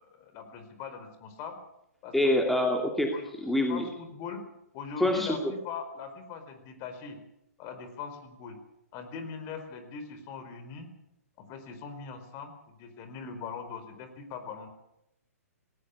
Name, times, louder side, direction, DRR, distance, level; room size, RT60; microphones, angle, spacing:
voice 1, 0.0-1.6 2.0-2.4 3.1-3.3 3.7-4.4 4.7-7.2 7.6-8.6 8.9-10.9 11.4-14.7, left 5 dB, 35° left, 8 dB, 4.6 m, -41 dB
voice 2, 2.1-3.8 5.0-5.4, left 1 dB, ahead, 2 dB, 2.3 m, -26 dB
19.0 x 18.0 x 8.5 m, 0.83 s
figure-of-eight pair, 125°, 8 cm